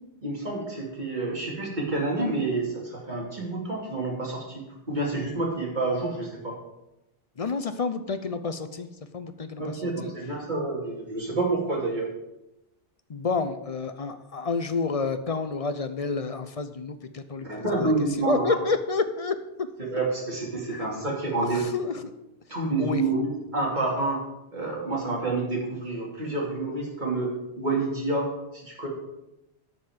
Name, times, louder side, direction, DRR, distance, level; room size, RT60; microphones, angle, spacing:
voice 1, 0.2-6.6 9.6-12.1 17.4-18.6 19.9-21.6 22.5-24.2 24.5-27.3 27.6-28.9, right 3 dB, 40° right, -3 dB, 2.7 m, -28 dB
voice 2, 7.4-8.9 9.1-9.7 10.0-10.1 13.1-17.9 18.2-19.7 20.7-20.9 21.4-21.9 22.8-23.0, left 4 dB, 40° left, 10 dB, 0.5 m, -29 dB
8.8 x 5.6 x 7.9 m, 0.93 s
omnidirectional pair, 1.2 m